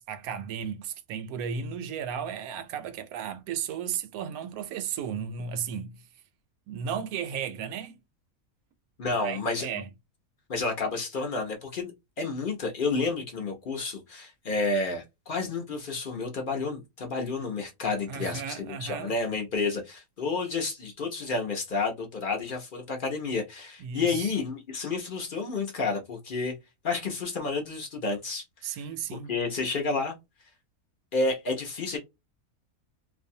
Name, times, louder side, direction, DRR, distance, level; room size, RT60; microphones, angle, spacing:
voice 1, 0.0-6.0 6.7-8.0 9.1-9.9 18.1-19.1 23.8-24.3 28.6-29.4, right 7 dB, 80° right, 1.0 m, -34 dB
voice 2, 9.0-9.7 10.5-11.9 12.2-26.6 26.8-28.8 29.3-30.1 31.1-32.0, left 3 dB, 50° left, 0.7 m, -30 dB
2.6 x 2.2 x 2.6 m
omnidirectional pair, 1.5 m